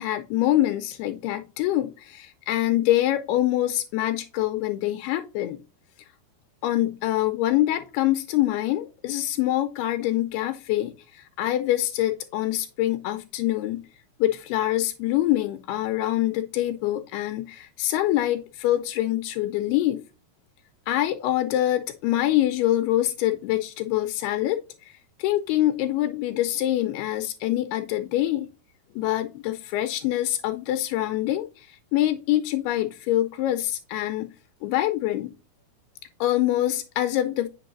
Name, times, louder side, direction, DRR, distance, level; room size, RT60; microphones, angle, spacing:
voice 1, 0.0-5.6 6.6-13.8 14.2-20.0 20.9-28.5 29.0-34.3 34.6-35.3 36.2-37.5, left 14 dB, 85° left, 8 dB, 2.6 m, -25 dB
8.4 x 5.3 x 2.5 m, 0.31 s
omnidirectional pair, 4.6 m